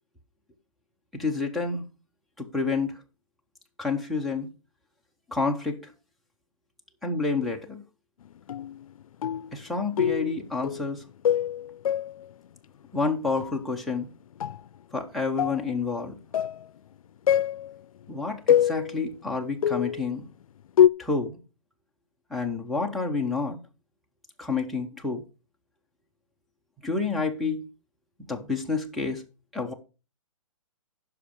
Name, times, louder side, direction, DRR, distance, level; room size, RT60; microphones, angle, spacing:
voice 1, 1.1-1.8 2.4-3.0 3.8-4.5 5.3-5.8 7.0-7.8 9.5-11.0 12.9-14.1 14.9-16.2 18.1-20.3 21.0-21.4 22.3-23.6 24.4-25.2 26.8-27.6 28.3-29.2 29.5-29.7, left 4 dB, ahead, 0.4 m, -29 dB
sound 1, 8.5-8.9 9.2-9.6 10.0-10.3 10.6-11.0 11.3-12.3 13.4-13.5 14.4-14.6 15.4-15.7 16.3-16.7 17.3-17.7 18.5-19.1 19.6-20.1 20.8-20.9, left 10 dB, 90° left, 0.4 m, -24 dB
9.9 x 5.8 x 5.1 m
hypercardioid pair, 165°, 17 cm